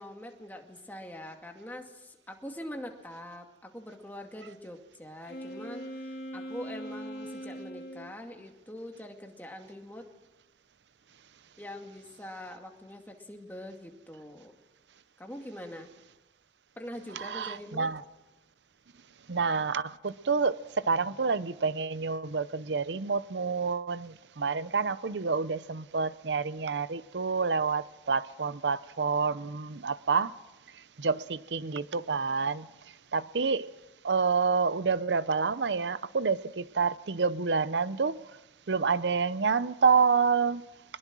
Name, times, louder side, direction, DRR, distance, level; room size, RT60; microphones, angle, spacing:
voice 1, 0.0-10.1 11.6-14.5 15.2-15.9 16.8-17.9, left 1 dB, 10° left, 2.2 m, -43 dB
Wind instrument woodwind instrument, 5.2-8.1, equal, 55° left, 3.1 m, -40 dB
voice 2, 17.2-18.0 19.3-30.3 31.0-32.7 33.1-33.7 34.0-38.2 38.7-40.7, right 5 dB, 85° right, 0.7 m, -28 dB
23.0 x 21.0 x 6.2 m
head